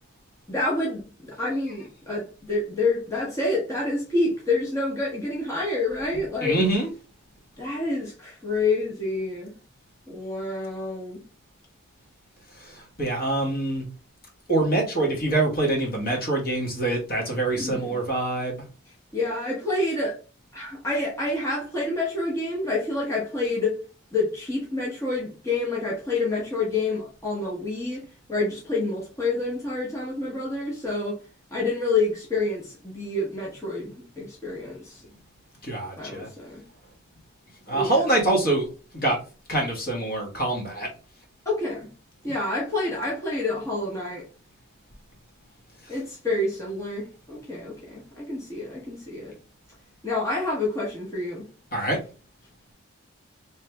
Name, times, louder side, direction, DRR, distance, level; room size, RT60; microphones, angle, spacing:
voice 1, 0.5-6.6 7.6-9.6 10.1-11.3 17.5-18.0 19.1-20.2 20.5-23.8 24.1-28.0 28.3-31.2 31.5-35.0 36.0-36.6 37.7-38.0 41.4-41.9 42.2-44.2 45.9-49.4 50.0-51.5 51.8-51.9, left 2 dB, 15° left, 0.9 m, -28 dB
voice 2, 6.4-6.9 12.5-13.9 14.5-18.6 35.6-36.3 37.7-38.7 38.9-39.2 39.5-40.9 45.8-45.9 51.7-52.0, right 2 dB, 45° left, 1.4 m, -25 dB
3.2 x 3.0 x 3.3 m
head